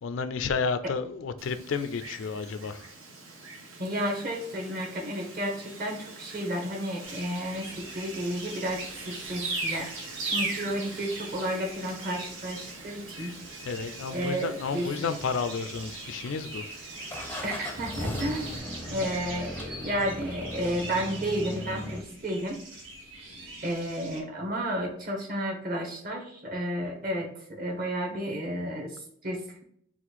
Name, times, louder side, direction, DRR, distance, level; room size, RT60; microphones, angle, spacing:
voice 1, 0.0-2.8 13.7-16.6, left 5 dB, 65° left, 11 dB, 0.4 m, -31 dB
Wind, 1.4-18.6, right 2 dB, 80° right, 1.0 m, -46 dB
voice 2, 3.8-7.7 7.9-9.9 10.2-13.3 14.1-14.9 17.4-18.5 18.9-22.6 23.6-29.6, equal, 45° right, 0 dB, 1.2 m, -32 dB
sound 1, 7.0-24.2, right 2 dB, 65° right, 1.2 m, -39 dB
sound 2, 15.7-16.4 17.1-22.0, left 1 dB, 10° left, 0.5 m, -38 dB
4.2 x 2.4 x 4.2 m, 0.66 s
head